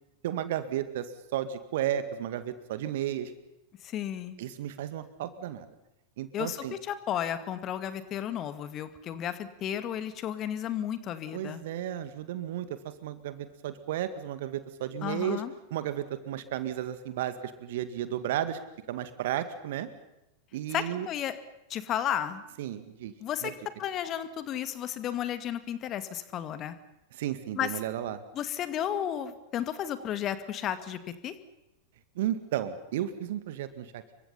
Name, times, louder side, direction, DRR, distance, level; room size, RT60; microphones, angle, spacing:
voice 1, 0.2-3.3 4.4-5.7 6.2-6.7 11.3-12.7 13.0-15.4 15.7-18.6 18.9-19.9 20.5-21.1 22.6-23.1 23.4-23.5 27.1-28.2 32.2-34.0, right 11 dB, 55° right, 12 dB, 2.1 m, -33 dB
voice 2, 3.8-4.4 6.3-11.6 15.0-15.5 20.7-21.4 21.7-22.4 23.2-23.5 23.8-26.7 27.6-27.7 28.3-31.3, left 10 dB, 30° left, 11 dB, 2.1 m, -33 dB
28.5 x 24.0 x 5.7 m, 0.90 s
figure-of-eight pair, 90°, 0 cm